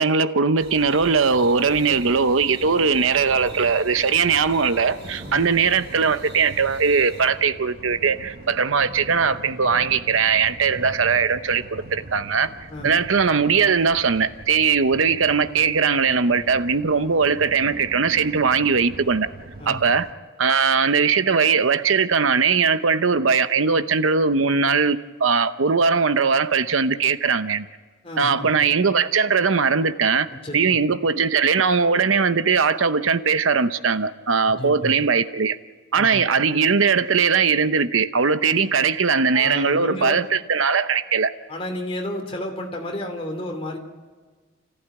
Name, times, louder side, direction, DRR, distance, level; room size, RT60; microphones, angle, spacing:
voice 1, 0.0-12.5 12.8-19.3 19.7-20.1 20.4-27.7 28.2-30.3 30.5-35.6 35.9-41.3, right 5 dB, 80° right, 11 dB, 0.8 m, -20 dB
sound 1, 0.6-7.3, right 1 dB, 60° right, 5.0 m, -44 dB
sound 2, 1.1-20.1, right 2 dB, 45° right, 1.0 m, -42 dB
voice 2, 28.0-28.5 30.3-30.6 34.6-34.9 36.0-36.2 39.3-40.2 41.5-43.8, left 1 dB, 30° left, 2 dB, 3.0 m, -31 dB
29.5 x 15.0 x 9.1 m, 1.4 s
head